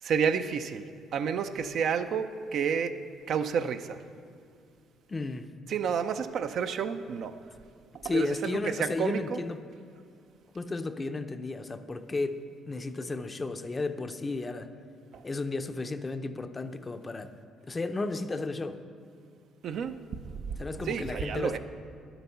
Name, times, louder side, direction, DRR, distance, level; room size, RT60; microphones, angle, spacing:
voice 1, 0.0-3.0 3.3-4.0 5.7-7.4 8.0-9.4 15.1-15.2 19.6-20.0 20.2-21.6, right 7 dB, 65° right, 9 dB, 0.5 m, -30 dB
voice 2, 5.1-5.5 8.0-9.6 10.5-14.7 15.2-17.3 17.7-18.8 20.6-21.6, left 3 dB, 25° left, 9 dB, 0.5 m, -33 dB
10.5 x 8.0 x 5.6 m, 2.3 s
supercardioid pair, 80°, 0 cm